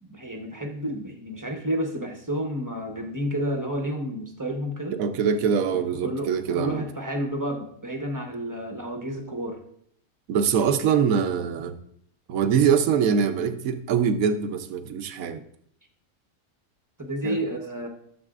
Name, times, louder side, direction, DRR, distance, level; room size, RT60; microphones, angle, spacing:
voice 1, 0.0-5.0 6.0-9.6 17.0-17.9, equal, 15° right, 2 dB, 0.8 m, -30 dB
voice 2, 4.9-6.8 10.3-11.8 12.3-15.4 17.2-17.4, right 7 dB, 70° right, 8 dB, 1.1 m, -23 dB
12.5 x 7.0 x 2.4 m, 0.67 s
omnidirectional pair, 1.6 m